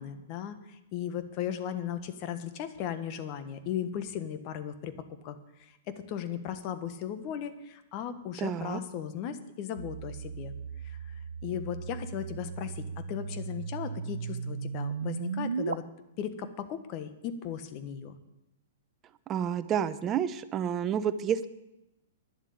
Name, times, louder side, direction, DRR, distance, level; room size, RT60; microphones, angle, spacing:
voice 1, 0.0-4.9 5.2-5.4 5.9-10.5 10.8-11.1 11.4-15.8 16.2-18.2, left 9 dB, 40° left, 10 dB, 1.3 m, -37 dB
voice 2, 8.4-8.8 19.3-21.5, right 8 dB, 30° right, 13 dB, 0.8 m, -29 dB
sound 1, 9.8-15.7, right 5 dB, 90° right, 0.4 m, -36 dB
11.0 x 7.4 x 8.6 m, 0.91 s
hypercardioid pair, 120°, 0 cm